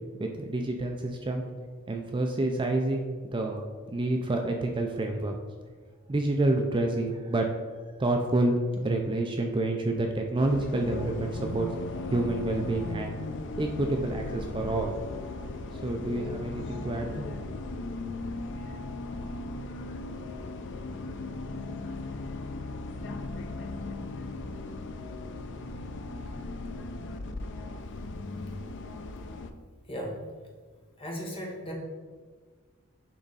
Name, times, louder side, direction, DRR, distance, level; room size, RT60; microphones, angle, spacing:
voice 1, 0.2-1.4 1.9-5.3 6.1-7.5 8.0-11.7 12.1-13.2 13.6-15.0 15.8-17.2, right 2 dB, 20° right, 2 dB, 0.5 m, -28 dB
Bus, 10.4-29.5, left 2 dB, 55° left, 0.5 m, -37 dB
voice 2, 29.9-30.2 31.0-31.7, equal, 25° left, -1 dB, 1.3 m, -36 dB
9.8 x 3.6 x 4.1 m, 1.5 s
head